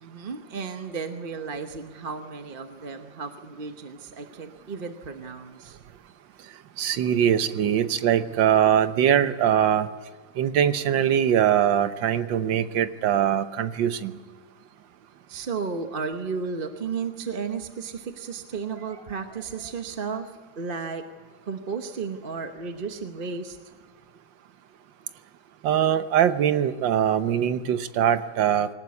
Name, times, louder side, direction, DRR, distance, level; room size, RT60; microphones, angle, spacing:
voice 1, 0.0-5.8 15.3-21.0 21.4-23.6, right 5 dB, 35° right, 6 dB, 1.0 m, -33 dB
voice 2, 6.8-9.9 10.4-14.2 25.6-28.7, right 9 dB, 85° right, 11 dB, 1.6 m, -22 dB
22.0 x 18.5 x 9.5 m, 1.5 s
omnidirectional pair, 2.0 m